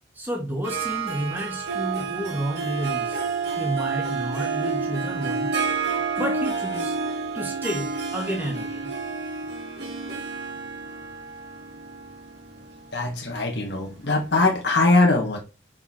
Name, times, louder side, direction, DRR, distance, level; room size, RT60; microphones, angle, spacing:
voice 1, 0.1-3.2 3.5-5.5 6.2-6.9 7.3-8.9, right 1 dB, 10° right, 1.6 m, -30 dB
Harp, 0.6-14.2, right 5 dB, 65° right, 2.1 m, -30 dB
voice 2, 12.9-15.4, left 2 dB, 65° left, 1.3 m, -21 dB
6.7 x 5.2 x 4.2 m
head